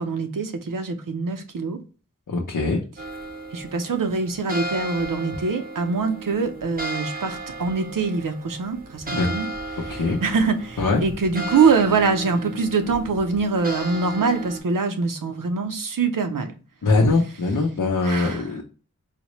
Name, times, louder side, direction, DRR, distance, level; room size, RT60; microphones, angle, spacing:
voice 1, 0.0-1.8 3.5-9.5 9.8-16.5 18.0-18.4, right 4 dB, 85° right, 0.6 m, -24 dB
voice 2, 2.3-2.8 9.1-9.3 9.9-10.2 10.8-11.0 16.8-18.6, left 3 dB, 85° left, 0.7 m, -22 dB
sound 1, 3.0-14.6, right 2 dB, 30° right, 0.6 m, -34 dB
4.1 x 2.1 x 2.9 m
wide cardioid pair, 55°, 32 cm